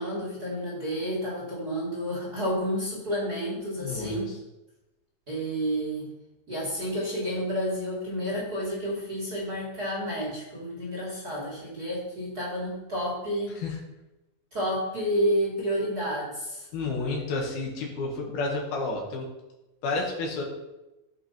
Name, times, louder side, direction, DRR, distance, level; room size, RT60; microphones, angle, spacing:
voice 1, 0.0-4.4 5.3-6.1 6.5-13.5 14.5-16.7, equal, 30° right, -5 dB, 2.3 m, -30 dB
voice 2, 3.8-4.2 13.6-13.7 16.7-19.3 19.8-20.4, left 3 dB, 75° left, 0 dB, 3.5 m, -30 dB
14.5 x 5.7 x 4.4 m, 0.99 s
omnidirectional pair, 4.4 m